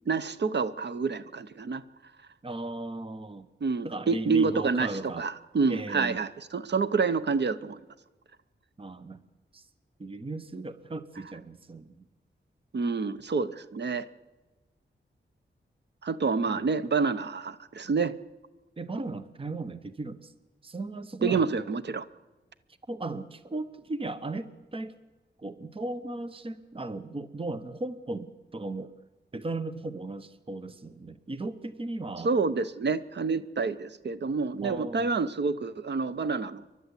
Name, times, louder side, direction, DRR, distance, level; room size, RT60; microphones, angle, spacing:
voice 1, 0.1-1.8 3.6-7.8 12.7-14.0 16.0-18.1 21.2-22.1 32.2-36.7, right 4 dB, 60° right, 13 dB, 0.8 m, -28 dB
voice 2, 2.4-3.5 3.8-5.3 5.7-6.2 8.8-9.2 9.5-9.6 10.0-12.1 16.5-16.6 18.8-20.3 20.6-21.5 22.9-24.9 25.4-28.9 29.3-32.3 34.6-35.1, right 2 dB, 25° right, 13 dB, 0.8 m, -36 dB
28.5 x 11.5 x 8.3 m, 1.2 s
wide cardioid pair, 120°, 20 cm